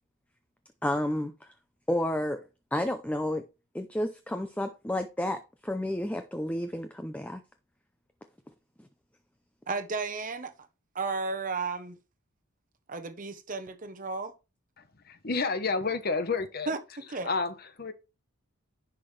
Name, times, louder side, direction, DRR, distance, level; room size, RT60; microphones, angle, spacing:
voice 1, 0.8-1.5 1.9-2.4 2.7-3.4 3.7-7.4, left 1 dB, 5° left, 0.5 m, -31 dB
voice 2, 9.7-10.5 10.9-12.0 12.9-14.3 16.7-16.8 17.1-17.3, right 4 dB, 35° right, 0.9 m, -33 dB
voice 3, 14.8-16.7 17.1-17.9, left 4 dB, 45° left, 1.0 m, -31 dB
10.5 x 5.9 x 3.3 m
head